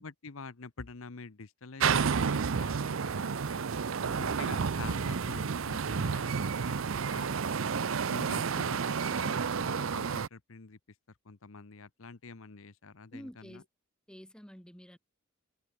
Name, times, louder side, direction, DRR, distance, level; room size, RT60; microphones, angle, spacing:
voice 1, 0.0-3.6 4.2-6.7 7.1-7.5 8.1-10.8 11.2-13.6, left 4 dB, 75° left, 1.0 m, -47 dB
sound 1, 1.8-10.3, right 6 dB, 70° right, 0.6 m, -31 dB
voice 2, 4.0-4.5 13.1-13.6 14.1-15.0, equal, 5° left, 1.2 m, -48 dB
open air
head